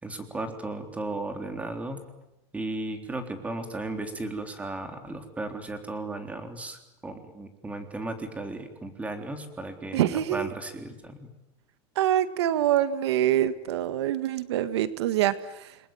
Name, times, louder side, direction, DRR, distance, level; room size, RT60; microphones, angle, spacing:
voice 1, 0.0-2.0 2.5-11.3, right 2 dB, 10° right, 6 dB, 3.6 m, -35 dB
voice 2, 9.9-10.5 12.0-15.8, right 12 dB, 85° right, 12 dB, 1.7 m, -25 dB
28.5 x 22.0 x 9.3 m, 0.91 s
supercardioid pair, 140°, 14 cm